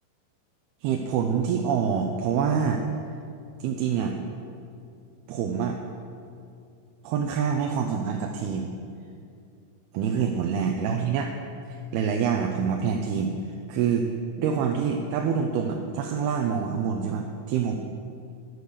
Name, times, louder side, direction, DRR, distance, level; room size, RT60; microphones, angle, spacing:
voice 1, 0.8-2.8 3.6-4.2 5.3-5.8 7.0-8.7 9.9-11.3 11.7-13.3 13.7-14.1 14.4-17.8, right 7 dB, 90° right, 2 dB, 2.7 m, -26 dB
12.0 x 9.7 x 6.6 m, 2.4 s
omnidirectional pair, 4.4 m